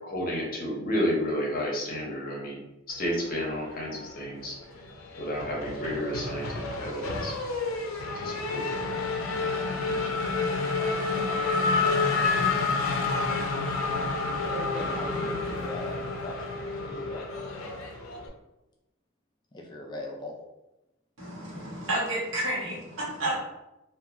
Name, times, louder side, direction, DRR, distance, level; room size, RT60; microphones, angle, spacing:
voice 1, 0.0-2.6 2.9-4.6 5.2-7.3 8.1-8.8, equal, 45° left, -2 dB, 0.7 m, -31 dB
Race car auto racing / Accelerating revving vroom, 3.3-4.3 4.6-18.3, left 3 dB, 85° left, 0.4 m, -29 dB
voice 2, 14.3-17.2 19.5-20.3, left 1 dB, 20° left, -1 dB, 0.3 m, -39 dB
voice 3, 21.2-23.4, right 1 dB, 70° right, -5 dB, 1.0 m, -31 dB
2.9 x 2.2 x 2.4 m, 0.95 s
head